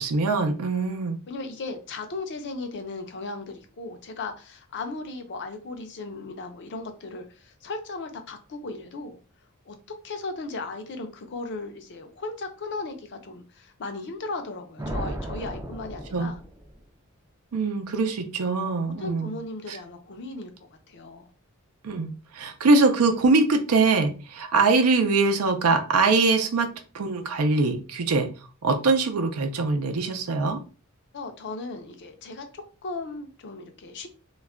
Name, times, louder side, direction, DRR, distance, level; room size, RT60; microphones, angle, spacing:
voice 1, 0.0-1.2 16.1-16.3 17.5-19.3 19.7-19.8 21.8-26.7 26.9-28.3 28.6-30.6, right 3 dB, 85° right, 6 dB, 0.5 m, -23 dB
voice 2, 1.3-9.2 9.7-9.8 10.0-16.4 18.8-21.3 31.1-34.1, left 3 dB, 55° left, 6 dB, 0.5 m, -36 dB
sound 1, 14.8-16.8, right 1 dB, 15° right, 0.4 m, -35 dB
2.3 x 2.1 x 3.5 m, 0.35 s
head